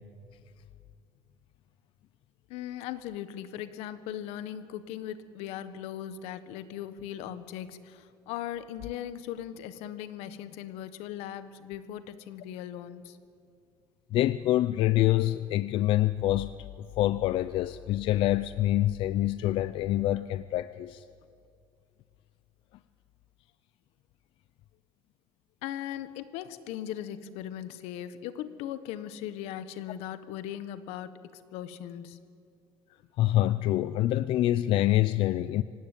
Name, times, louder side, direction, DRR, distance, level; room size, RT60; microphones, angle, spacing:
voice 1, 2.5-13.2 25.6-32.2, left 11 dB, 85° left, 12 dB, 1.4 m, -39 dB
voice 2, 14.1-16.5 16.8-21.0 33.2-35.6, left 14 dB, 55° left, 14 dB, 0.6 m, -26 dB
25.5 x 17.5 x 9.2 m, 2.4 s
cardioid pair, 160°, 10 cm